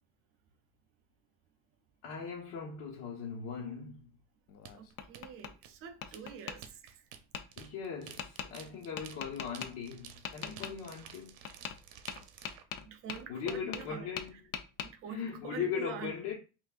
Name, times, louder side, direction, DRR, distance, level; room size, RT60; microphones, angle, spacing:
voice 1, 2.0-4.1 7.6-11.4 13.3-14.4 15.1-16.3, left 6 dB, 75° left, 1.1 m, -39 dB
Tap, 4.5-5.5 6.0-6.6 7.3-7.4 8.2-8.5 9.0-9.7 10.2-10.7 11.4-11.8 12.1-13.9 14.2-14.9, left 8 dB, 40° left, 0.4 m, -40 dB
sound 1, 4.6-12.6, right 8 dB, 70° right, 0.7 m, -52 dB
voice 2, 4.7-7.0 12.9-14.1 14.3-14.4 14.8-16.2, right 8 dB, 40° right, 0.4 m, -46 dB
5.7 x 2.6 x 2.4 m
cardioid pair, 180°, 38 cm